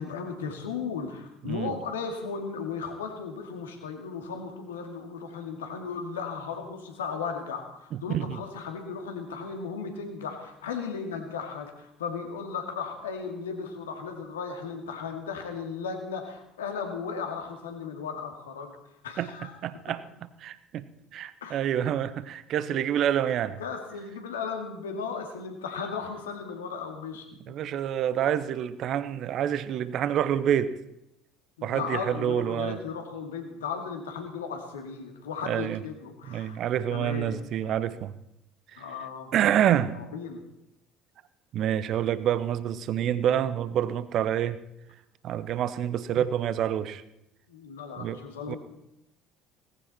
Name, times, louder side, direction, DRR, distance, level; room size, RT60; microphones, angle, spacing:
voice 1, 0.0-18.7 19.0-19.5 21.4-21.6 23.2-23.3 23.6-27.3 31.6-36.6 36.9-37.3 38.8-39.3 40.1-40.4 47.5-48.6, left 5 dB, 75° left, 4 dB, 2.3 m, -36 dB
voice 2, 7.9-8.4 19.2-19.3 19.6-20.8 21.1-23.6 27.5-30.8 31.6-32.8 35.5-35.8 36.3-38.2 38.7-38.8 39.3-40.0 41.5-44.6 45.2-47.0 48.0-48.2 48.5-48.6, right 10 dB, 50° right, 15 dB, 0.9 m, -27 dB
18.0 x 15.5 x 4.4 m, 0.83 s
figure-of-eight pair, 60°, 0 cm